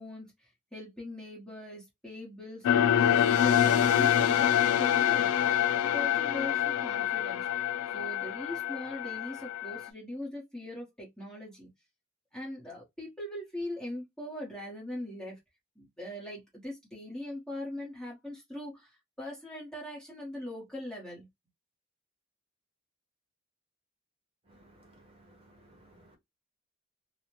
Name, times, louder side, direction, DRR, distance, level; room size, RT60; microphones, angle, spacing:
voice 1, 0.0-7.5 7.9-11.7 12.3-15.3 15.8-21.3, left 1 dB, 5° left, 1.0 m, -41 dB
sound 1, 2.6-9.9, left 10 dB, 90° left, 0.4 m, -26 dB
voice 2, 24.4-26.2, right 1 dB, 25° right, 1.0 m, -59 dB
2.7 x 2.1 x 3.0 m
head